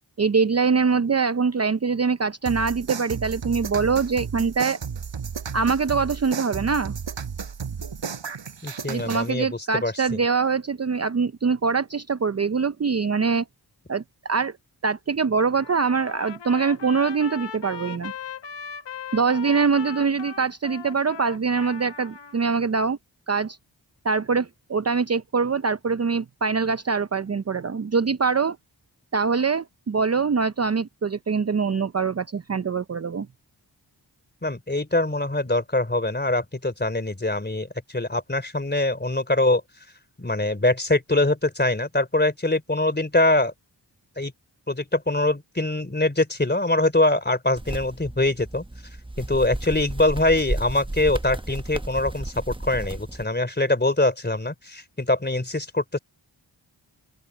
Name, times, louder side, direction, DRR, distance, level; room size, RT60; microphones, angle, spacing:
voice 1, 0.2-4.8 5.5-6.9 8.9-13.4 13.9-14.5 14.8-18.1 19.1-23.0 23.3-23.6 24.0-28.6 29.1-33.3, right 5 dB, 35° right, 0.7 m, -23 dB
sound 1, 2.5-9.3, right 6 dB, 85° right, 5.9 m, -33 dB
voice 2, 8.6-10.2 34.4-39.6 40.2-43.5 44.2-44.3 44.7-48.6 49.2-56.0, left 2 dB, 25° left, 3.6 m, -23 dB
Trumpet, 15.5-22.4, left 7 dB, 75° left, 1.3 m, -39 dB
sound 2, 47.6-53.2, right 1 dB, 10° right, 1.0 m, -33 dB
open air
cardioid pair, 40°, 43 cm